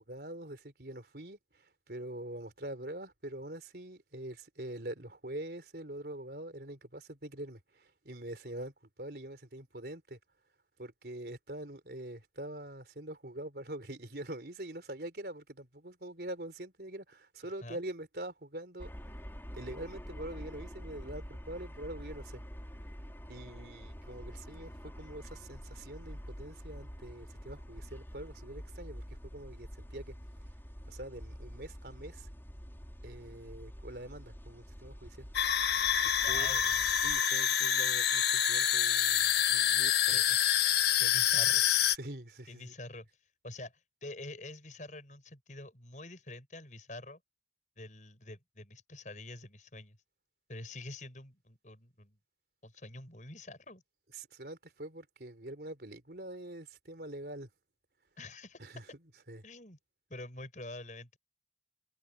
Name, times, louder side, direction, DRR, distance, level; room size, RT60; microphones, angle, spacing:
voice 1, 0.0-1.4 1.9-8.7 9.0-10.2 10.8-18.9 19.5-22.4 23.3-29.0 29.3-30.1 30.9-32.3 33.0-35.3 36.0-36.5 37.0-40.2 41.9-42.7 54.1-57.5 58.6-58.9 59.3-59.4, right 1 dB, 65° right, 3.7 m, -44 dB
sound 1, 18.8-37.2, equal, 15° left, 4.2 m, -47 dB
sound 2, 35.3-42.0, left 9 dB, 70° left, 1.5 m, -27 dB
voice 2, 36.2-36.9 40.1-40.4 41.0-41.6 42.5-43.1 43.4-43.7 44.0-47.2 47.8-50.0 50.5-52.2 52.6-53.8 58.2-58.6 59.4-59.8 60.1-61.2, left 2 dB, 45° left, 7.3 m, -46 dB
head